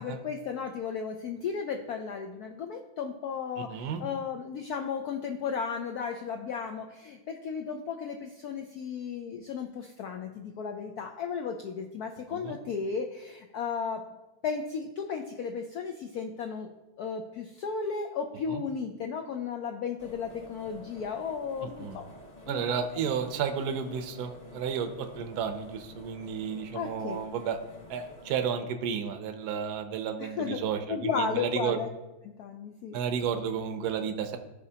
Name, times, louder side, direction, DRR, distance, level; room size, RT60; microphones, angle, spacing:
voice 1, 0.0-14.0 14.4-16.7 17.0-22.0 22.5-22.6 22.9-23.1 26.7-27.2 30.2-31.9 32.2-33.0, left 6 dB, 90° left, 4 dB, 0.8 m, -34 dB
voice 2, 3.6-4.0 12.3-12.6 18.5-18.6 21.6-22.0 22.5-27.6 27.9-31.8 32.9-34.4, right 7 dB, 65° right, 6 dB, 1.0 m, -32 dB
sound 1, 20.0-28.5, left 1 dB, 35° left, 0.6 m, -50 dB
14.0 x 5.0 x 2.8 m, 1.0 s
omnidirectional pair, 2.3 m